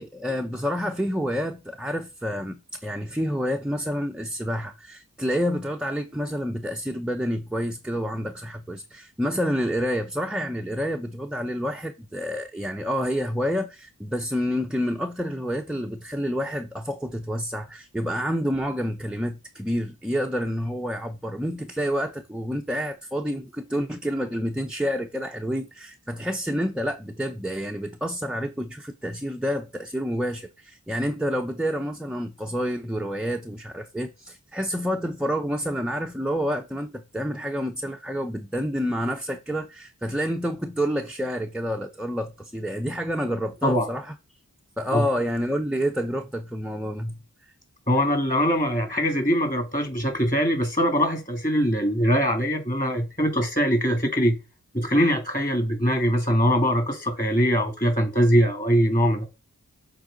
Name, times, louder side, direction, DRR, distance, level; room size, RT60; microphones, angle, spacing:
voice 1, 0.0-44.1 44.8-47.2, equal, 5° right, 0.5 m, -28 dB
voice 2, 47.9-54.4 54.7-59.3, equal, 25° left, 2.5 m, -22 dB
7.7 x 3.8 x 3.9 m
wide cardioid pair, 45°, 34 cm